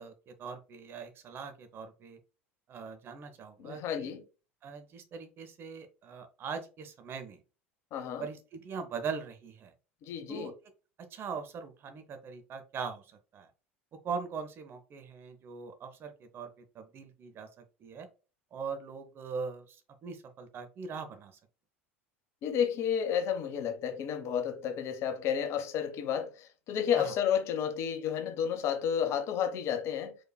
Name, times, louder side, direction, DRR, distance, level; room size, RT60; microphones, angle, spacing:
voice 1, 0.0-2.2 2.7-4.1 4.6-7.4 8.2-9.7 10.3-10.5 11.0-13.5 14.0-18.1 18.5-21.4 26.9-27.1, right 5 dB, 35° right, 0.8 m, -41 dB
voice 2, 3.6-4.2 7.9-8.3 10.0-10.5 22.4-30.2, left 8 dB, 40° left, 0.7 m, -31 dB
4.7 x 4.5 x 2.3 m
figure-of-eight pair, 75°, 7 cm